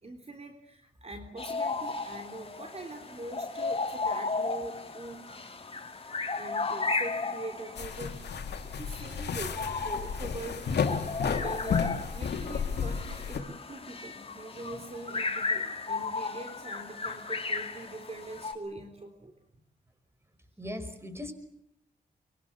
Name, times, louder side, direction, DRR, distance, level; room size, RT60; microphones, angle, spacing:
voice 1, 0.0-5.2 6.3-11.8 12.1-19.3, right 2 dB, 40° right, 5 dB, 3.7 m, -43 dB
sound 1, 1.4-18.5, left 4 dB, 35° left, 3.7 m, -35 dB
sound 2, 7.8-13.4, left 6 dB, 80° left, 2.4 m, -32 dB
voice 2, 20.6-21.3, left 1 dB, 15° right, 11 dB, 5.3 m, -39 dB
24.5 x 24.0 x 8.4 m, 0.77 s
cardioid pair, 65°, 17 cm